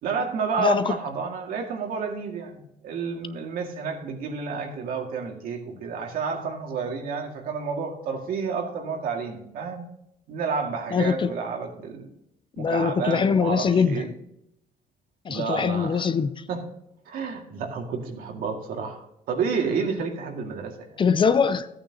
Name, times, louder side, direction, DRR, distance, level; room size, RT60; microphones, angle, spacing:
voice 1, 0.0-9.8 10.3-12.1 12.6-14.1 15.3-16.1 16.5-16.6 17.1-21.0, right 5 dB, 80° right, 2 dB, 2.1 m, -30 dB
voice 2, 0.6-0.9 10.9-11.3 12.6-14.1 15.2-16.4 21.0-21.7, left 6 dB, 35° left, 13 dB, 0.6 m, -22 dB
14.0 x 8.8 x 2.9 m, 0.81 s
cardioid pair, 110°, 15 cm